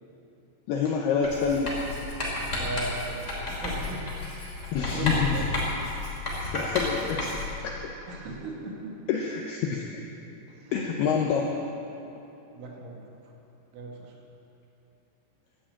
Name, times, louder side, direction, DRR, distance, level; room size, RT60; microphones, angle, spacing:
voice 1, 0.7-1.8 4.7-5.6 6.4-7.4 7.8-7.9 9.1-10.0 10.7-11.5, left 6 dB, 90° left, 1 dB, 2.3 m, -27 dB
Writing, 1.2-7.6, left 2 dB, 15° left, 2.8 m, -32 dB
voice 2, 2.6-4.0 4.8-5.5 8.1-8.8 10.5-10.7 11.0-11.1 12.5-13.0 13.7-14.2, right 3 dB, 75° right, 0 dB, 4.3 m, -37 dB
12.5 x 12.0 x 8.8 m, 3.0 s
omnidirectional pair, 5.8 m